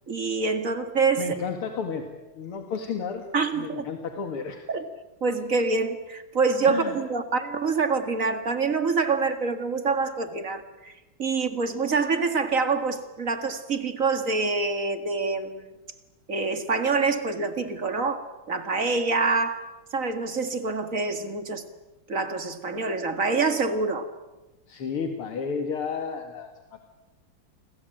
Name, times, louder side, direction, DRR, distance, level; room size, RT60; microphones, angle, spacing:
voice 1, 0.1-1.3 3.3-3.9 4.7-4.9 5.2-15.7 16.3-19.6 19.9-21.6 22.1-24.1, right 4 dB, 40° right, 8 dB, 2.2 m, -26 dB
voice 2, 1.2-2.1 2.3-3.3 3.5-4.7 6.7-7.0 24.7-26.9, left 6 dB, 85° left, 5 dB, 2.8 m, -32 dB
29.0 x 21.5 x 9.1 m, 1.1 s
omnidirectional pair, 2.3 m